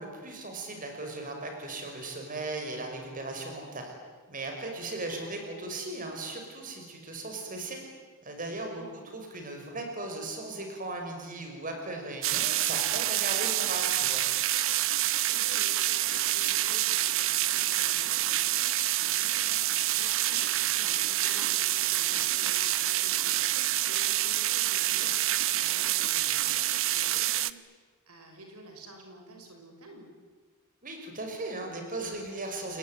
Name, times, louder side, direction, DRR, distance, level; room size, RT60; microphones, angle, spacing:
voice 1, 0.0-3.9 4.3-7.8 8.2-8.8 9.1-14.2 30.8-32.8, right 2 dB, 40° right, 3 dB, 6.1 m, -37 dB
voice 2, 8.8-9.1 15.3-30.1, right 1 dB, 85° right, 3 dB, 6.1 m, -51 dB
sound 1, 12.2-27.5, right 14 dB, 65° right, 0.9 m, -27 dB
29.0 x 21.5 x 9.5 m, 1.5 s
head